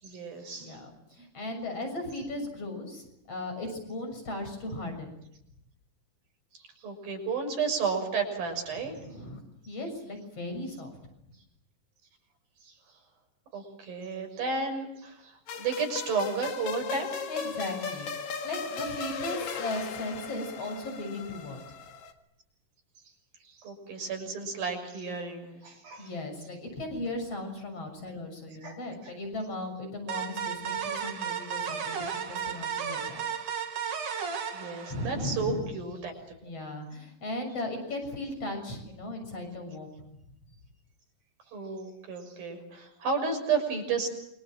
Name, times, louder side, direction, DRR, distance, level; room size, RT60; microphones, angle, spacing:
voice 1, 0.0-0.8 6.8-9.0 12.6-12.7 13.5-17.3 23.4-26.1 28.6-28.8 29.0-29.1 34.5-36.1 41.5-44.1, right 5 dB, 90° right, 4 dB, 8.1 m, -32 dB
voice 2, 0.6-5.1 9.1-9.4 9.7-10.9 17.3-18.1 18.4-21.6 26.0-33.2 34.9-35.7 36.4-40.0, left 2 dB, 40° left, 6 dB, 7.7 m, -37 dB
sound 1, 15.5-22.1, left 6 dB, 60° left, 3.0 m, -37 dB
sound 2, 30.1-35.5, right 7 dB, 65° right, 3.9 m, -34 dB
29.0 x 25.5 x 7.7 m, 0.80 s
omnidirectional pair, 4.1 m